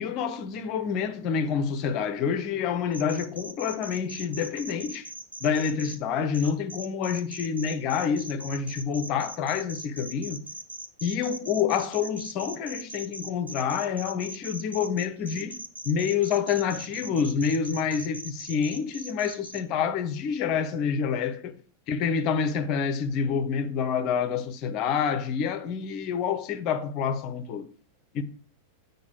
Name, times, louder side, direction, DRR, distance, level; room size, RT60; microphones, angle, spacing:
voice 1, 0.0-5.1 5.4-10.4 11.0-15.6 15.8-21.5 21.9-27.7 28.1-28.2, left 7 dB, 40° left, 1.0 m, -28 dB
sound 1, 2.9-6.0 6.3-19.6, right 2 dB, 80° right, 0.9 m, -40 dB
8.6 x 4.1 x 6.9 m
figure-of-eight pair, 90°, 0 cm